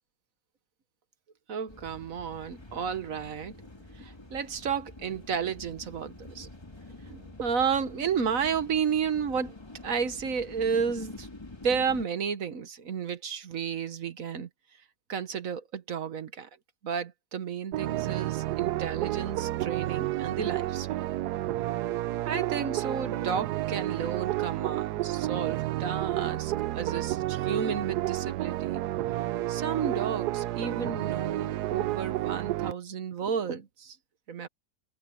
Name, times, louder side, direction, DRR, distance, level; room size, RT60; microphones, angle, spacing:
voice 1, 1.5-3.6 4.0-6.5 7.4-9.5 9.8-11.3 11.6-14.5 15.1-16.5 16.8-21.1 22.2-28.8 29.5-34.0 34.3-34.5, right 6 dB, 55° right, 1.5 m, -32 dB
sound 1, 1.7-12.0, left 2 dB, 15° left, 1.7 m, -47 dB
sound 2, 17.7-32.7, right 15 dB, 75° right, 1.1 m, -31 dB
omnidirectional pair, 1.8 m